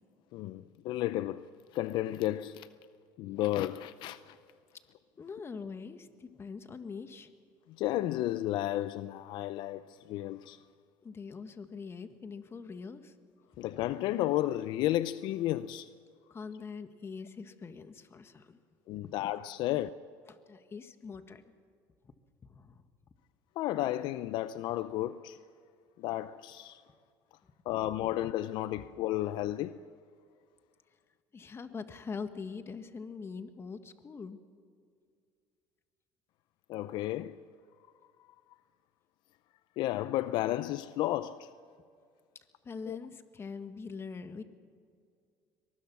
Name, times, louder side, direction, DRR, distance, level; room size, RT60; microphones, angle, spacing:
voice 1, 0.3-2.7 3.2-4.4 7.7-10.6 13.6-15.9 18.9-19.9 23.6-25.4 26.0-26.8 27.7-29.8 36.7-37.4 39.8-41.5 42.9-43.0, left 14 dB, 70° left, 0.5 m, -33 dB
voice 2, 5.2-7.3 11.0-13.1 16.3-18.6 19.0-19.1 20.3-21.4 22.0-22.1 22.4-22.8 31.3-34.4 42.6-44.4, left 5 dB, 30° left, 1.6 m, -43 dB
23.0 x 20.0 x 6.1 m
supercardioid pair, 95°, 8 cm